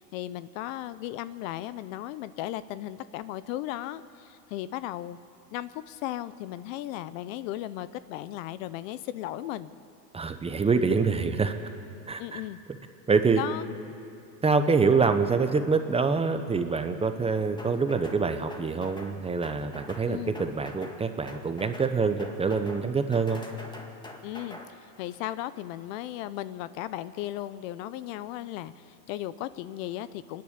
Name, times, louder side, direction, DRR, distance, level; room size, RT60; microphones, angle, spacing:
voice 1, 0.0-5.2 5.5-9.7 12.2-12.6 13.4-13.7 20.1-20.3 24.2-30.4, left 14 dB, 50° left, 16 dB, 0.8 m, -36 dB
voice 2, 10.1-11.5 12.1-12.4 13.1-13.4 14.4-23.4, right 4 dB, 10° right, 8 dB, 0.9 m, -25 dB
sound 1, 17.6-18.2 18.5-19.1 19.4-20.1 20.3-21.0 21.3-21.9 22.2-22.8 23.1-24.7, left 1 dB, 10° left, 2.0 m, -44 dB
28.0 x 10.5 x 8.7 m, 2.6 s
hypercardioid pair, 120°, 50 cm